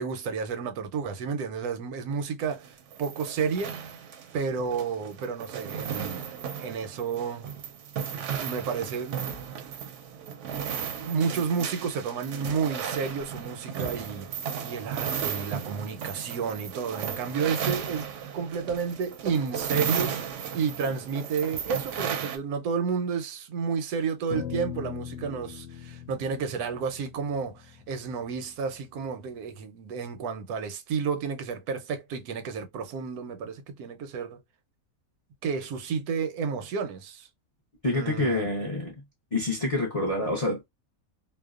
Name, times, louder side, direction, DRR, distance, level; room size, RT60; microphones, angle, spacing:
voice 1, 0.0-3.8 4.3-7.5 8.3-9.3 10.9-14.3 14.6-34.4 35.4-37.3 37.9-38.5, right 6 dB, 90° right, 1.1 m, -31 dB
sound 1, 2.4-22.4, right 8 dB, 65° right, 0.8 m, -35 dB
sound 2, 24.3-28.8, left 9 dB, 65° left, 0.9 m, -40 dB
voice 2, 37.8-39.0 39.3-40.7, left 2 dB, 45° left, 0.4 m, -27 dB
2.6 x 2.1 x 2.3 m
omnidirectional pair, 1.5 m